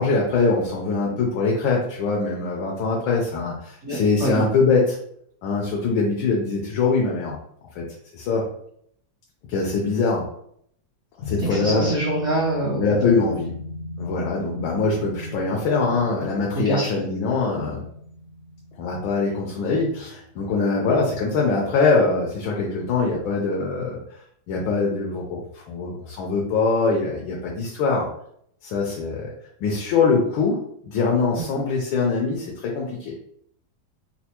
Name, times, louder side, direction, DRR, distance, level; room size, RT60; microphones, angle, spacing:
voice 1, 0.0-5.0 5.4-7.4 7.7-7.9 8.1-8.4 9.5-10.3 11.2-11.9 12.7-13.6 14.0-17.8 18.8-24.0 24.5-28.1 28.6-29.3 29.6-33.1, left 4 dB, 85° left, -2 dB, 1.5 m, -23 dB
voice 2, 3.8-4.4 11.5-13.1 16.5-16.9, right 1 dB, 45° right, -9 dB, 1.0 m, -25 dB
sound 1, 11.2-20.3 20.6-20.7, right 1 dB, 60° left, 0.9 m, -34 dB
4.4 x 2.2 x 2.9 m, 0.69 s
omnidirectional pair, 2.2 m